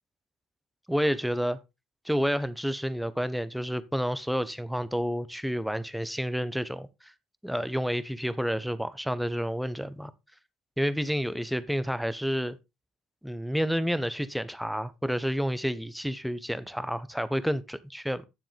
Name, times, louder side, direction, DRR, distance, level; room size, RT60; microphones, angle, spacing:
voice 1, 0.9-1.6 2.0-7.1 7.4-10.1 10.8-12.6 13.2-18.3, equal, ahead, 0.9 m, -30 dB
9.4 x 7.4 x 3.5 m
hypercardioid pair, 60°, 0 cm